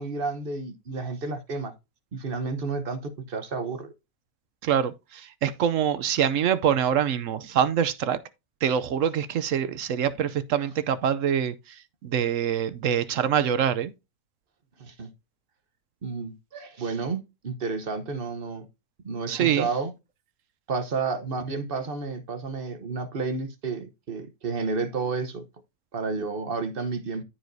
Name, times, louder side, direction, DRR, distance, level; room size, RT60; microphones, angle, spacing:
voice 1, 0.0-1.7 2.1-3.9 14.8-15.1 16.0-18.7 19.0-19.9 20.7-25.4 25.9-27.2, right 4 dB, 40° right, 1.0 m, -31 dB
voice 2, 4.6-8.2 8.6-11.5 12.0-13.9 19.3-19.7, right 9 dB, 65° right, 0.9 m, -25 dB
14.0 x 4.8 x 2.7 m
omnidirectional pair, 1.6 m